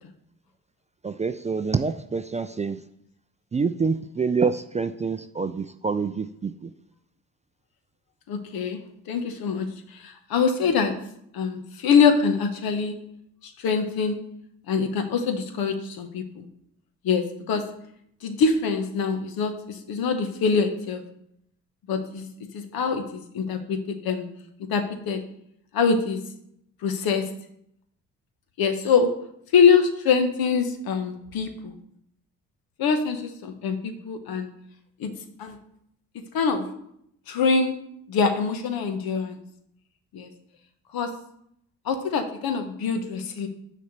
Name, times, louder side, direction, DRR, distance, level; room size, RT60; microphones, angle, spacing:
voice 1, 1.0-2.8 3.5-6.7, right 5 dB, 20° right, 10 dB, 0.4 m, -26 dB
voice 2, 8.3-8.8 9.1-9.7 9.9-10.9 11.3-12.9 13.4-14.2 14.7-16.4 17.0-17.6 18.2-21.0 21.9-22.3 22.5-24.3 24.7-25.2 25.7-26.2 26.8-27.2 28.6-29.1 29.5-31.7 32.8-34.5 35.0-35.1 35.4-35.6 36.3-36.7 37.3-37.7 38.1-39.4 40.1-40.3 40.9-41.1 41.8-43.5, left 5 dB, 65° left, 7 dB, 1.1 m, -24 dB
6.5 x 4.3 x 6.5 m, 0.73 s
hypercardioid pair, 50°, 38 cm